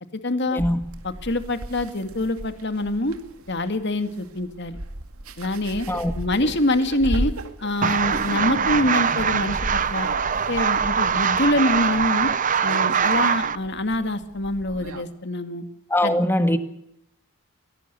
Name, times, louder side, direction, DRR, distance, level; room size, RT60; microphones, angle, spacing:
voice 1, 0.2-0.6 1.0-3.2 3.5-4.8 5.4-5.9 6.1-7.3 7.6-10.1 10.5-12.3 12.6-15.6 16.0-16.2, left 1 dB, 50° left, 8 dB, 2.1 m, -25 dB
sound 1, 0.6-15.0, right 1 dB, 75° right, 2.3 m, -35 dB
sound 2, 7.8-13.6, right 7 dB, 35° right, 0.8 m, -22 dB
voice 2, 15.9-16.6, left 1 dB, 10° left, 8 dB, 1.8 m, -21 dB
24.0 x 18.5 x 6.8 m, 0.76 s
head